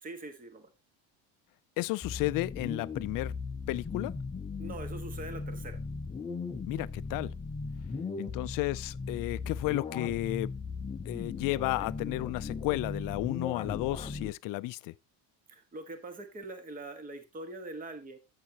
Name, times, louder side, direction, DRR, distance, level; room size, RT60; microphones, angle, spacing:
voice 1, 0.0-0.7 4.6-5.8 15.5-18.2, right 2 dB, 20° right, 1.4 m, -43 dB
voice 2, 1.8-3.3 3.7-4.1 6.7-7.3 8.2-10.5 11.1-14.9, left 20 dB, 50° left, 0.5 m, -33 dB
sound 1, 2.0-14.3, left 4 dB, 15° left, 0.7 m, -38 dB
11.0 x 8.5 x 2.9 m
cardioid pair, 155°, 43 cm